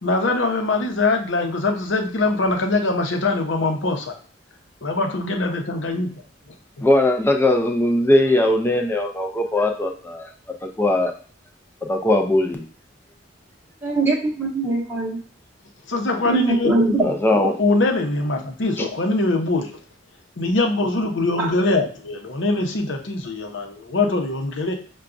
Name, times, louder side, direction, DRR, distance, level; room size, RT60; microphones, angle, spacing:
voice 1, 0.0-4.1 4.8-6.1 6.5-6.8 15.9-17.1 17.6-19.7 20.4-24.7, left 2 dB, 70° left, 3 dB, 0.7 m, -23 dB
voice 2, 6.8-10.3 10.6-11.1 11.8-12.7 17.0-17.5 18.8-18.9, left 1 dB, 10° left, 3 dB, 0.4 m, -19 dB
voice 3, 13.8-15.2 16.2-17.0 21.4-21.5, right 2 dB, 10° right, -3 dB, 0.8 m, -21 dB
5.7 x 2.3 x 2.5 m, 0.41 s
head